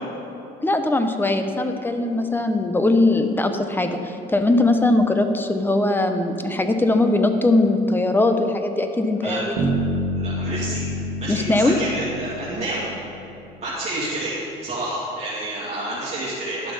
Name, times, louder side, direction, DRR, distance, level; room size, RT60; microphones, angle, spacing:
voice 1, 0.6-9.5 11.3-11.8, left 2 dB, 10° left, 7 dB, 0.7 m, -20 dB
Bass guitar, 9.6-13.5, right 1 dB, 75° right, 1.3 m, -28 dB
voice 2, 10.1-10.8 11.2-12.9 13.6-14.4 14.6-16.7, right 2 dB, 40° right, -8 dB, 2.4 m, -29 dB
11.5 x 6.8 x 5.5 m, 2.9 s
cardioid pair, 110°, 17 cm